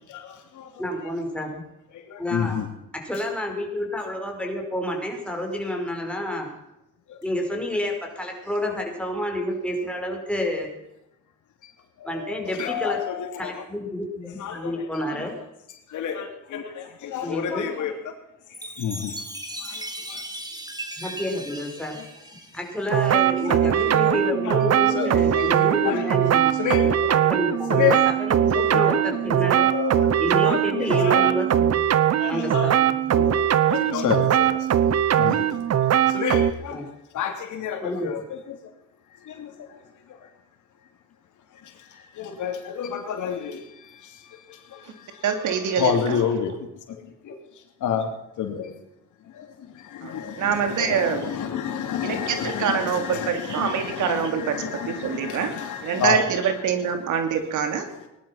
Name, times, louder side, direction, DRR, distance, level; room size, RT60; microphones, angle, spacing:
voice 1, 0.1-0.8 1.9-2.7 7.1-7.2 12.0-13.6 14.4-15.2 15.9-18.1 18.8-19.2 19.6-20.2 23.4-24.1 24.4-24.6 24.9-26.1 26.6-27.2 27.4-28.0 28.4-30.1 30.4-31.3 32.2-32.7 33.2-33.4 33.7-34.8 35.2-35.5 36.1-36.8 37.1-38.6 39.2-39.7 40.1-40.3 41.6-45.3 45.7-46.5 46.9-47.4 47.8-48.1 48.4-48.7 49.3-56.2 57.9-58.1, left 8 dB, 80° left, 4 dB, 3.0 m, -30 dB
voice 2, 0.8-1.6 2.2-2.6 2.9-6.5 7.2-10.8 12.0-13.0 13.4-15.4 17.2-17.7 21.0-22.0 22.5-26.6 27.1-29.7 30.2-31.8 32.3-33.2 36.7-36.8 37.8-38.1, left 1 dB, 5° left, 1 dB, 4.9 m, -29 dB
Chime, 18.5-23.2, right 1 dB, 15° right, 2.7 m, -37 dB
sound 1, 22.9-36.5, right 10 dB, 55° right, 1.1 m, -21 dB
voice 3, 45.2-46.2 50.0-51.3 52.0-55.6 55.8-57.8, right 7 dB, 80° right, 7 dB, 2.7 m, -25 dB
19.5 x 11.5 x 5.8 m, 0.87 s
cardioid pair, 90°, 30 cm